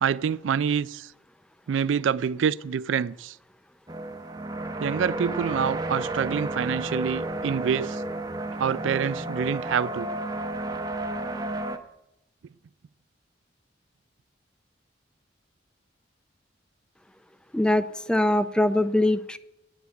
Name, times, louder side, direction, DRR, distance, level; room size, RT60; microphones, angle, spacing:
voice 1, 0.0-1.1 1.7-3.4 4.8-8.0 8.6-10.1, right 7 dB, 85° right, 0.3 m, -26 dB
sound 1, 3.9-11.8, right 1 dB, 20° right, 0.7 m, -32 dB
voice 2, 17.5-19.4, left 1 dB, 5° left, 0.4 m, -22 dB
9.7 x 8.4 x 8.1 m
head